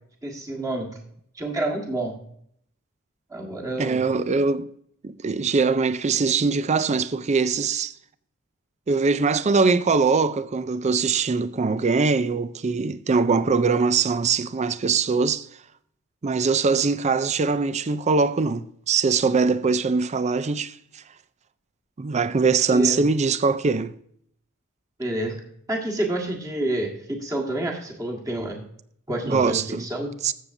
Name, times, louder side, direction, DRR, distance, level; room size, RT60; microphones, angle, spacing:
voice 1, 0.2-1.0 1.3-2.1 3.3-4.1 22.7-23.1 25.0-25.4 25.7-28.6 29.1-30.1, right 1 dB, 15° right, 1.6 m, -28 dB
voice 2, 3.8-4.7 5.0-7.9 8.9-15.5 16.2-21.0 22.0-23.9 29.2-29.9 30.2-30.3, right 4 dB, 30° right, 0.4 m, -22 dB
14.5 x 7.2 x 2.6 m
head